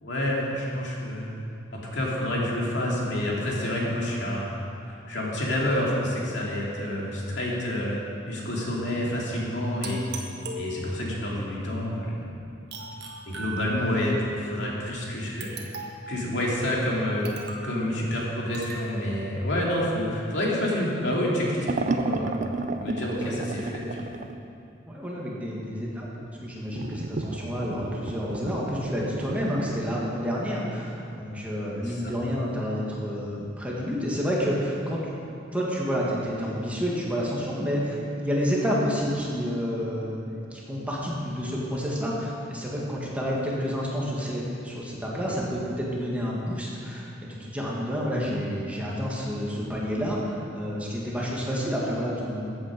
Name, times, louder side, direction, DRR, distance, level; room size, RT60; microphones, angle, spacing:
voice 1, 0.0-1.3 1.9-4.5 4.8-8.0 8.3-10.0 10.6-12.2 13.3-15.6 16.1-17.3 17.6-22.3 22.8-24.1 31.8-32.1, left 1 dB, 65° left, -4 dB, 2.6 m, -28 dB
sound 1, 9.8-11.2 12.7-14.1 15.4-16.2 17.2-17.8 18.5-18.9, right 2 dB, 60° right, 1.4 m, -38 dB
sound 2, 21.7-24.4 26.7-29.8, right 3 dB, 40° right, 0.5 m, -32 dB
voice 2, 24.9-35.1 35.5-47.1 47.4-52.6, equal, 10° right, -5 dB, 1.8 m, -29 dB
14.5 x 8.6 x 5.2 m, 2.6 s
head